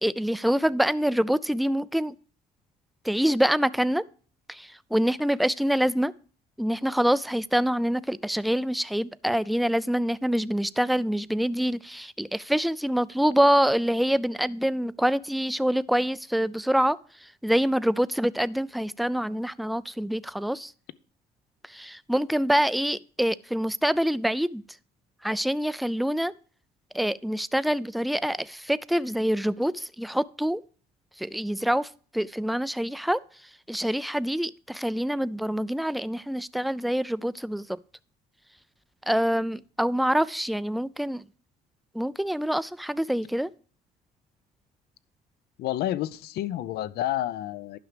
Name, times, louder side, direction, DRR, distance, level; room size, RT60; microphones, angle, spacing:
voice 1, 0.0-2.1 3.0-4.0 4.5-6.1 6.6-17.0 17.4-20.7 21.7-24.6 25.2-26.3 26.9-30.6 31.2-31.9 32.1-33.2 33.7-37.8 39.1-41.2 41.9-43.5, equal, ahead, 0.3 m, -25 dB
voice 2, 45.6-47.8, left 13 dB, 70° left, 0.6 m, -29 dB
11.0 x 6.0 x 4.9 m
cardioid pair, 110°, 17 cm